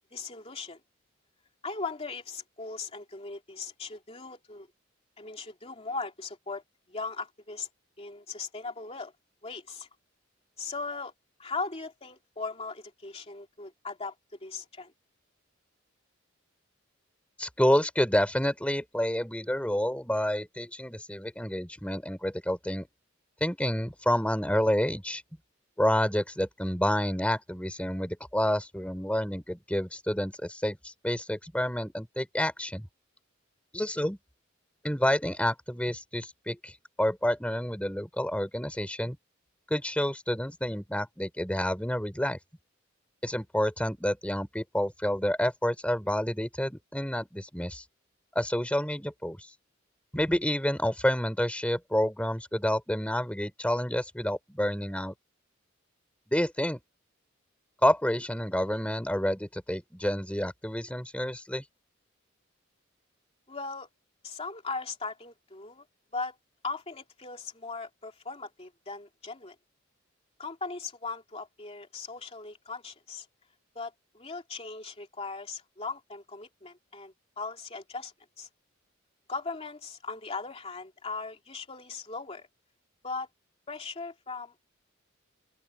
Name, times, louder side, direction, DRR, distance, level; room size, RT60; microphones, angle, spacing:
voice 1, 0.1-0.8 1.6-4.7 5.2-6.6 6.9-7.7 8.0-9.1 9.4-9.9 10.6-11.1 11.4-14.1 14.4-14.9 63.5-63.9 64.2-65.8 66.1-66.4 66.6-69.5 70.4-73.3 73.7-78.5 79.3-82.5 83.0-83.3 83.7-84.7, left 4 dB, 30° left, 2.8 m, -38 dB
voice 2, 17.4-22.9 23.4-25.2 25.8-32.8 33.7-34.2 34.8-36.7 37.0-39.2 39.7-42.4 43.2-47.8 48.3-49.4 50.1-55.1 56.3-56.8 57.8-61.6, equal, 5° left, 3.6 m, -29 dB
open air
head